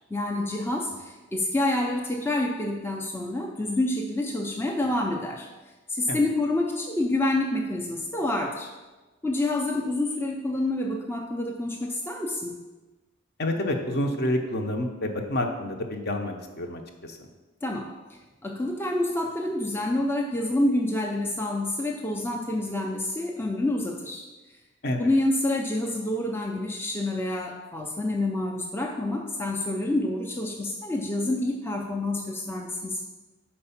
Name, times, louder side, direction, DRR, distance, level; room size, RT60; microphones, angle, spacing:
voice 1, 0.1-5.5 5.9-8.7 9.2-12.6 17.6-24.3 25.0-33.0, left 1 dB, 10° left, 0 dB, 0.4 m, -28 dB
voice 2, 13.4-17.2 24.8-25.0, left 1 dB, 50° left, 4 dB, 0.7 m, -28 dB
4.7 x 4.4 x 5.6 m, 1.2 s
head